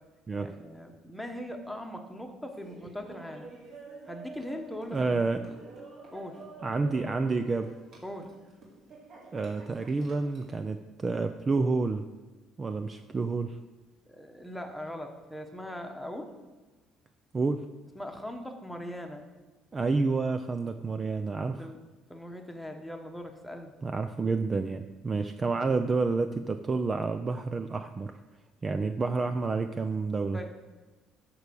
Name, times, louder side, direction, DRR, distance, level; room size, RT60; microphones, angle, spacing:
voice 1, 0.4-3.5 4.1-5.3 6.1-6.4 8.0-8.3 14.1-16.3 17.9-19.3 21.6-21.8 22.1-23.7 30.3-30.6, equal, 5° left, 4 dB, 1.2 m, -40 dB
Laughter, 2.5-10.6, right 3 dB, 50° right, 3.7 m, -49 dB
voice 2, 4.9-5.4 6.6-7.7 9.3-12.1 12.6-13.6 17.3-17.6 19.7-21.7 23.8-28.2 28.6-30.4, right 3 dB, 25° right, 9 dB, 0.4 m, -29 dB
13.5 x 4.7 x 7.0 m, 1.3 s
cardioid pair, 135°, 0 cm